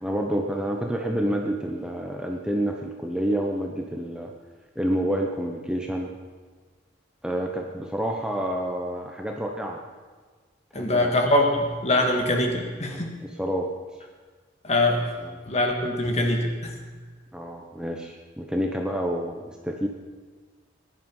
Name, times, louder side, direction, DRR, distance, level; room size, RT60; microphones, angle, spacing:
voice 1, 0.0-4.3 4.7-6.1 7.2-9.8 10.7-11.2 12.9-13.7 15.2-15.4 17.3-19.9, equal, 5° right, 1 dB, 0.9 m, -28 dB
voice 2, 10.7-13.1 14.6-15.1 15.5-16.7, left 1 dB, 35° left, 2 dB, 2.1 m, -23 dB
19.5 x 11.0 x 5.6 m, 1.4 s
head